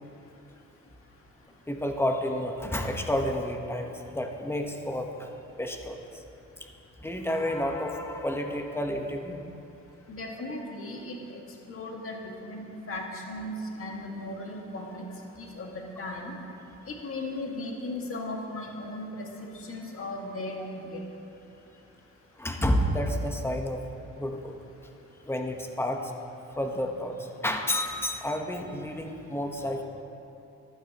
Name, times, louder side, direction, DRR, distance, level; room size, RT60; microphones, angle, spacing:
voice 1, 1.7-5.3 5.6-6.0 7.0-9.4 22.4-23.8 24.1-24.5 25.3-26.0 26.6-27.1 27.4-29.8, left 1 dB, 10° left, 3 dB, 1.1 m, -30 dB
voice 2, 10.1-11.2 11.7-15.1 15.4-15.7 16.0-16.3 16.9-21.0, left 1 dB, 45° left, 0 dB, 1.9 m, -37 dB
14.5 x 11.5 x 3.0 m, 2.8 s
cardioid pair, 90°, 30 cm